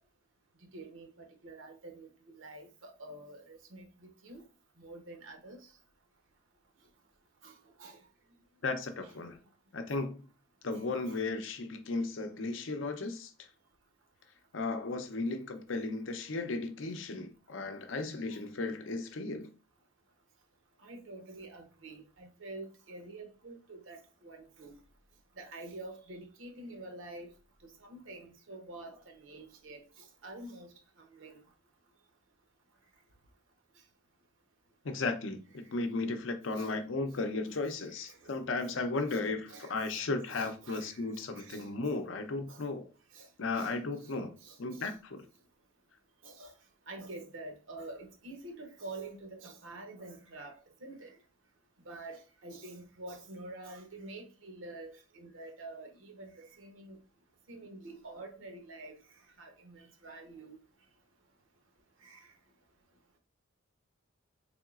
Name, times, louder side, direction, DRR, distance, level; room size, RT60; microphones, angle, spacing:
voice 1, 0.6-4.4 4.8-5.7 7.4-8.0 9.0-9.1 10.7-11.2 18.3-18.4 20.8-24.8 25.4-27.3 27.8-31.4 36.5-36.7 37.9-38.3 39.1-39.2 39.5-40.0 40.3-41.7 42.5-42.6 43.1-43.3 43.5-44.9 46.2-46.5 46.9-51.2 51.8-57.0 57.5-60.6 62.0-62.3, right 2 dB, 80° right, 0.8 m, -48 dB
voice 2, 8.6-9.4 9.7-10.3 10.6-13.3 14.5-19.5 34.8-42.9 43.4-44.3 44.6-45.3, left 3 dB, 70° left, 0.6 m, -35 dB
3.8 x 3.5 x 2.4 m
head